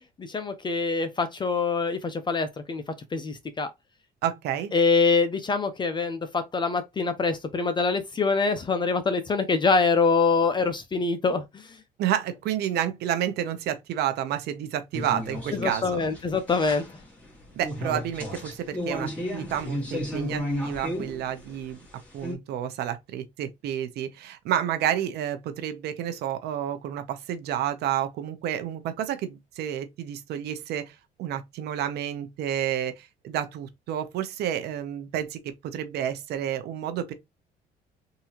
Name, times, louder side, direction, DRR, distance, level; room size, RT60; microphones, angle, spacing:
voice 1, 0.2-2.8 3.1-3.7 4.7-11.8 15.5-16.8, left 4 dB, 25° left, 0.6 m, -25 dB
voice 2, 4.2-4.7 12.0-16.0 17.5-21.8 22.1-30.9 31.2-37.1, right 10 dB, 75° right, 0.8 m, -30 dB
sound 1, 14.9-22.3, left 1 dB, 10° left, 1.6 m, -33 dB
3.7 x 2.7 x 2.9 m
cardioid pair, 110°, 17 cm